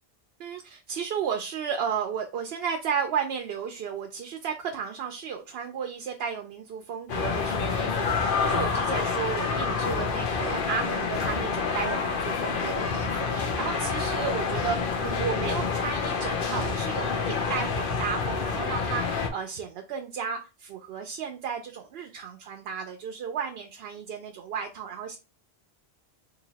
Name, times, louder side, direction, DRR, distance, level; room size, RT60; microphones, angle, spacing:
voice 1, 0.4-25.2, right 7 dB, 75° right, 4 dB, 0.8 m, -33 dB
sound 1, 7.1-19.3, left 5 dB, 60° left, 0.8 m, -28 dB
3.0 x 2.7 x 3.9 m, 0.30 s
omnidirectional pair, 1.0 m